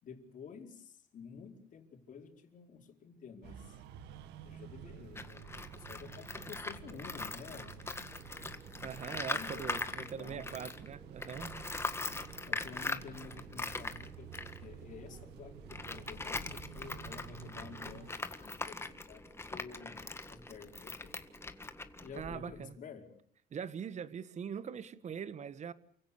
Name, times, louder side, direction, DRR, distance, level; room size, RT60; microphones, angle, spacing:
voice 1, 0.0-3.8 4.2-8.0 8.7-10.6 12.5-14.3 14.6-19.2 19.5-21.2 22.0-23.2, left 6 dB, 50° left, 4.7 m, -51 dB
sound 1, 3.4-18.1, right 10 dB, 85° right, 1.8 m, -51 dB
Tools, 5.1-10.9 11.2-22.6, left 3 dB, 15° left, 1.8 m, -41 dB
sound 2, 8.1-22.5, right 1 dB, 10° right, 2.7 m, -59 dB
voice 2, 8.8-11.5 22.2-22.7 23.5-25.7, right 7 dB, 45° right, 1.5 m, -42 dB
29.0 x 16.5 x 8.6 m
cardioid pair, 110°, 17 cm